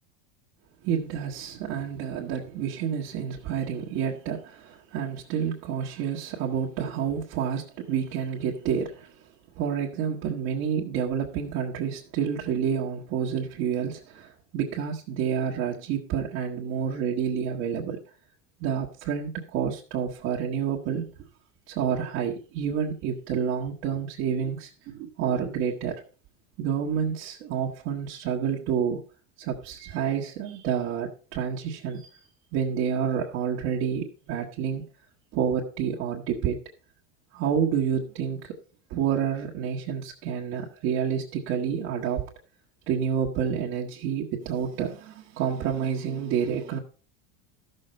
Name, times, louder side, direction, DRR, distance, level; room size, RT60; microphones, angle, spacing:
voice 1, 0.8-9.1 9.6-18.0 18.6-21.0 21.7-26.0 26.6-29.0 29.4-32.1 32.5-34.8 35.3-36.6 37.3-38.5 38.9-42.2 42.9-46.8, right 8 dB, 45° right, -3 dB, 1.5 m, -29 dB
13.5 x 6.7 x 4.3 m, 0.37 s
supercardioid pair, 160°, 33 cm